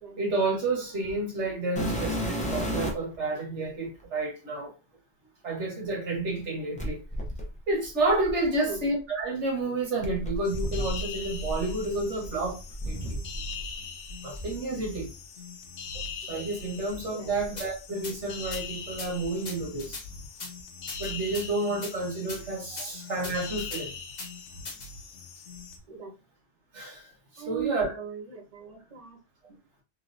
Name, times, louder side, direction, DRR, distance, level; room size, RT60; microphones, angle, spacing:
voice 1, 0.2-4.7 5.4-7.0 7.7-12.6 12.8-13.2 14.2-15.1 16.3-20.0 21.0-23.9 26.7-27.9, right 2 dB, 80° right, 1.5 m, -30 dB
sound 1, 1.8-3.2 4.0-4.1 6.8-8.9 10.0-13.7 14.0-15.1 15.8-16.0 16.6-16.7 17.4-18.5 18.7-19.3 20.6-20.7, equal, 10° left, 0.5 m, -34 dB
voice 2, 8.5-8.8 10.8-10.9 15.9-16.0 17.0-17.3 22.7-22.9 25.9-26.2 27.4-29.8, right 7 dB, 35° right, 1.0 m, -39 dB
sound 2, 10.4-25.8, left 5 dB, 90° left, 0.9 m, -41 dB
sound 3, 17.6-17.7 18.0-18.1 18.5-18.6 19.0-19.1 19.4-20.0 20.4-20.5 20.9-21.5 21.8-21.9 22.3-22.4 22.8-22.9 23.2-23.8 24.2-24.3 24.6-24.9, left 3 dB, 40° left, 0.9 m, -38 dB
3.2 x 2.8 x 2.5 m
omnidirectional pair, 1.2 m